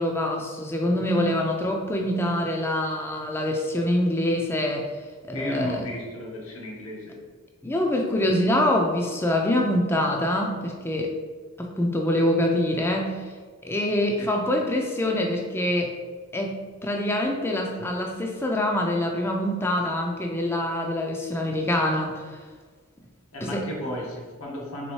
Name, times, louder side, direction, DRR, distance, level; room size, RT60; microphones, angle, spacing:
voice 1, 0.0-4.9 5.3-5.9 7.6-11.1 11.6-13.2 13.6-15.9 16.3-22.4 23.4-23.6, left 1 dB, 10° left, 1 dB, 0.4 m, -25 dB
voice 2, 5.3-7.2 14.2-14.3 23.3-24.9, left 1 dB, 80° left, -3 dB, 1.2 m, -34 dB
4.1 x 3.5 x 3.0 m, 1.5 s
head